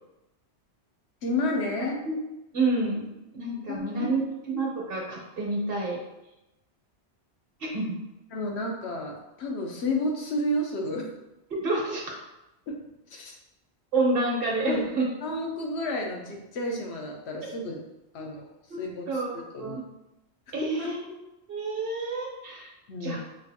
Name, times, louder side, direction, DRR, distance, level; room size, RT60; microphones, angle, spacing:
voice 1, 1.2-2.0 3.7-4.1 8.3-11.1 12.7-12.8 13.1-13.3 14.6-14.8 15.2-17.8 18.1-18.5 18.8-19.8 20.8-21.0 22.9-23.2, left 1 dB, 75° left, 1 dB, 1.0 m, -31 dB
voice 2, 1.8-2.2 2.5-3.1 3.3-4.2 4.5-6.0 7.6-8.0 11.6-12.0 13.9-15.1 17.4-17.5 18.7-18.8 19.1-19.3 19.6-19.8 20.5-21.1 21.5-22.7 23.0-23.2, right 2 dB, 60° right, -2 dB, 1.0 m, -28 dB
5.3 x 2.5 x 2.7 m, 0.94 s
omnidirectional pair, 1.1 m